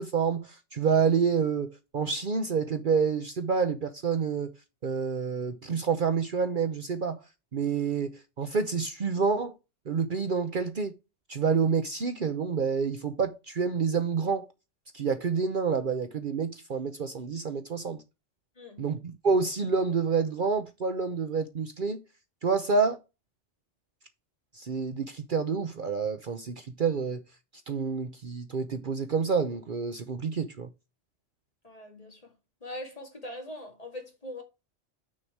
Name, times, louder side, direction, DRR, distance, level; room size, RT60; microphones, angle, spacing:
voice 1, 0.0-4.5 4.8-7.2 7.5-9.5 9.9-10.9 11.3-14.5 14.9-18.0 18.8-22.0 22.4-23.0 24.5-27.2 27.7-30.7, right 5 dB, 50° right, 0.9 m, -28 dB
voice 2, 18.6-18.9 31.6-32.3 32.6-34.4, left 1 dB, 30° left, 2.2 m, -42 dB
6.4 x 5.8 x 4.6 m
omnidirectional pair, 1.2 m